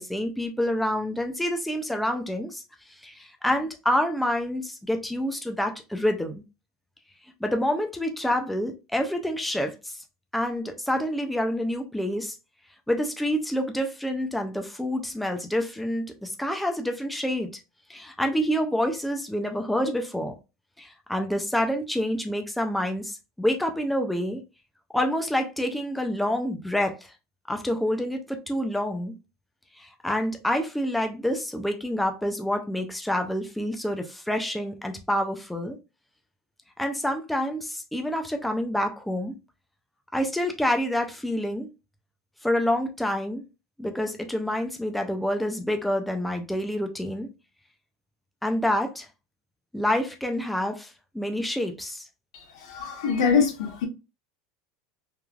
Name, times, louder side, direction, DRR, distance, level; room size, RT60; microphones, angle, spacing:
voice 1, 0.0-2.6 3.0-3.1 3.4-6.4 7.4-9.7 10.3-12.3 12.9-17.5 17.9-20.3 20.8-24.4 24.9-27.0 27.5-29.1 30.0-35.8 36.8-39.3 40.1-41.7 42.4-43.4 43.8-47.3 48.4-49.1 49.7-50.9 51.1-52.0, equal, ahead, 0.3 m, -27 dB
voice 2, 52.6-53.8, left 6 dB, 90° left, 0.9 m, -23 dB
3.1 x 2.2 x 2.3 m
supercardioid pair, 150°, 3 cm